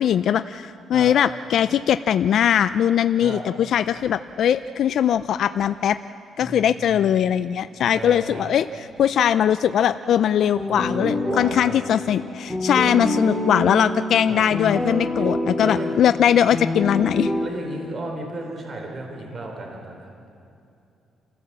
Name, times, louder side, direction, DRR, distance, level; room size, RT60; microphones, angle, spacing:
voice 1, 0.0-6.0 6.4-8.6 9.0-17.3, left 9 dB, 70° left, 11 dB, 0.4 m, -20 dB
voice 2, 6.4-7.1 7.9-8.5 10.7-11.8 14.3-14.4 15.5-15.9 17.4-20.1, right 2 dB, 45° right, 2 dB, 3.8 m, -34 dB
sound 1, 10.5-17.5, left 1 dB, ahead, 3.1 m, -27 dB
29.0 x 15.5 x 7.5 m, 2.7 s
cardioid pair, 90°, 0 cm